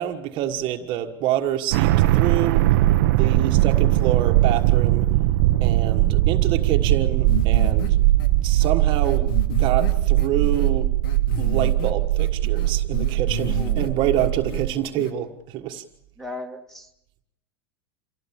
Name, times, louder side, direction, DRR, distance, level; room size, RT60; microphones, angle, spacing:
voice 1, 0.0-2.8 3.2-5.1 5.6-8.0 8.4-10.9 11.4-15.8, right 11 dB, 45° right, 1.5 m, -27 dB
sound 1, 1.7-14.7, right 15 dB, 65° right, 0.8 m, -20 dB
sound 2, 7.3-7.9 8.2-8.3 8.6-8.7 9.0-10.7 11.0-11.9 12.2-13.9 14.2-14.6 15.0-15.1, left 5 dB, 80° left, 2.6 m, -32 dB
voice 2, 13.5-14.0 16.2-16.9, left 1 dB, 5° left, 2.3 m, -37 dB
27.0 x 17.0 x 7.2 m
supercardioid pair, 130°, 12 cm